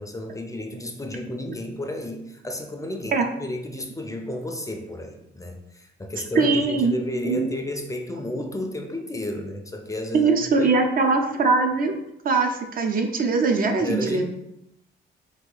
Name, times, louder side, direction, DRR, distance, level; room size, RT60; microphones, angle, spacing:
voice 1, 0.0-10.3 10.6-10.8 13.8-14.2, left 1 dB, 15° left, 4 dB, 0.4 m, -32 dB
voice 2, 6.3-6.9 7.2-7.5 10.1-12.0 12.2-14.2, right 4 dB, 45° right, 5 dB, 0.5 m, -21 dB
2.8 x 2.4 x 3.8 m, 0.83 s
cardioid pair, 90°, 20 cm